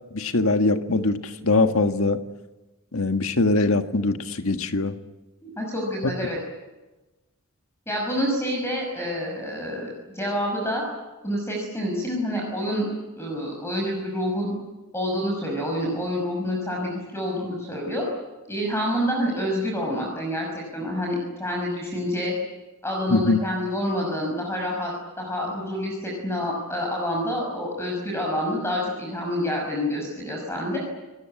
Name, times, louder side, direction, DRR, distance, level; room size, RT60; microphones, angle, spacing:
voice 1, 0.1-2.2 2.9-4.9 23.1-23.4, left 2 dB, 70° left, 7 dB, 1.6 m, -22 dB
voice 2, 5.4-6.4 7.9-9.9 10.1-10.8 11.2-12.9 13.2-14.5 14.9-18.0 18.5-22.3 22.8-24.9 25.2-30.8, equal, 10° left, 0 dB, 5.9 m, -27 dB
29.5 x 18.5 x 8.9 m, 1.1 s
head